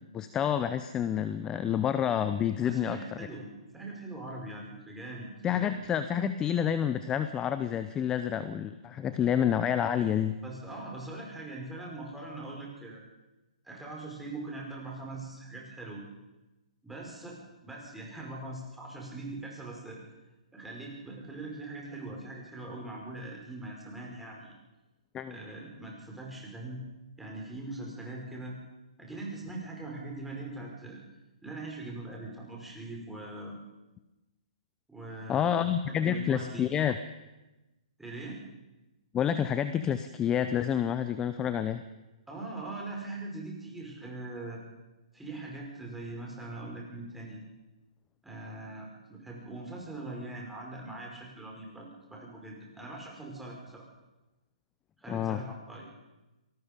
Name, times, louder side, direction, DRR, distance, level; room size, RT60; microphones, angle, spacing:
voice 1, 0.0-3.0 5.4-10.4 25.1-25.4 35.3-37.0 39.1-41.8 55.1-55.4, left 9 dB, 15° left, 11 dB, 0.8 m, -28 dB
voice 2, 2.6-5.8 10.4-13.0 13.6-16.0 16.8-17.4 17.6-20.0 20.5-24.6 25.3-26.8 27.2-28.6 29.0-31.0 31.4-33.6 34.9-36.6 38.0-38.4 42.3-44.6 45.1-47.4 48.2-53.9 55.0-55.9, right 2 dB, 5° right, -2 dB, 5.2 m, -41 dB
26.5 x 18.5 x 5.3 m, 1.1 s
hypercardioid pair, 140°, 4 cm